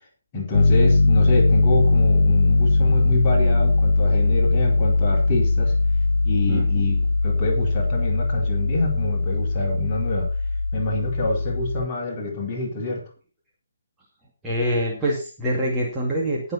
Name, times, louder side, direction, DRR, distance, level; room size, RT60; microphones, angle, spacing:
voice 1, 0.3-5.7 6.2-10.3 10.7-13.0, left 2 dB, 25° left, -2 dB, 4.2 m, -27 dB
Piano, 0.5-11.9, left 3 dB, 70° left, 0.5 m, -20 dB
voice 2, 6.5-6.9 14.4-16.5, equal, 10° right, -5 dB, 2.5 m, -25 dB
19.5 x 7.0 x 4.2 m, 0.35 s
figure-of-eight pair, 140°, 0 cm